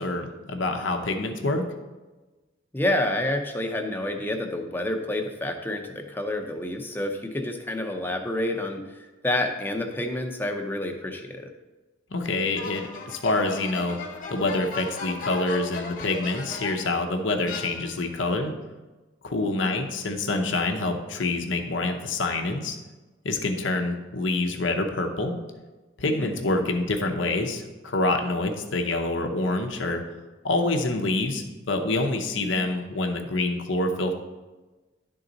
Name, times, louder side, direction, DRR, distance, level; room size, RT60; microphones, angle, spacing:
voice 1, 0.0-1.6 12.1-14.0 14.3-18.5 19.2-22.8 23.2-25.3 26.0-30.0 30.4-34.1, left 2 dB, 85° left, 4 dB, 0.8 m, -26 dB
voice 2, 2.7-11.5 26.1-26.3, left 1 dB, 10° left, 3 dB, 0.6 m, -29 dB
sound 1, 12.6-17.0 17.5-18.2, left 4 dB, 45° left, 0.9 m, -37 dB
11.5 x 3.9 x 3.9 m, 1.2 s
head